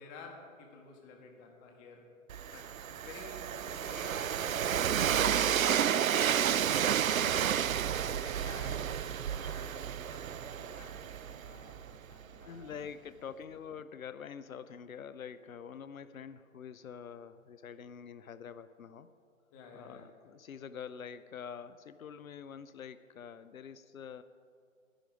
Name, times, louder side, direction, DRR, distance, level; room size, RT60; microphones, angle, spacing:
voice 1, 0.0-2.1 2.5-7.3 8.1-12.9 19.5-20.1, left 3 dB, 20° left, 2 dB, 1.5 m, -52 dB
Train, 2.3-12.1, right 9 dB, 85° right, 0.5 m, -31 dB
voice 2, 12.5-19.1 19.7-24.2, left 7 dB, 85° left, 13 dB, 0.6 m, -46 dB
11.5 x 10.5 x 5.0 m, 2.3 s
hypercardioid pair, 140°, 40 cm